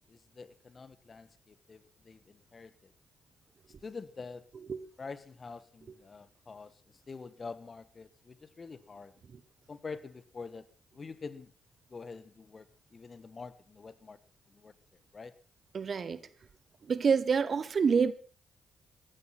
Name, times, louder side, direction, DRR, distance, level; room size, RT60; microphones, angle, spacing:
voice 1, 0.1-2.9 3.8-4.4 5.0-6.7 7.1-9.1 9.7-10.6 10.9-11.5 11.9-12.7 12.9-14.2 14.5-14.7 15.1-15.3, left 4 dB, 40° left, 1.5 m, -46 dB
voice 2, 15.7-16.2 16.8-18.1, right 6 dB, 50° right, 1.2 m, -27 dB
15.0 x 11.5 x 5.9 m
hypercardioid pair, 45°, 0 cm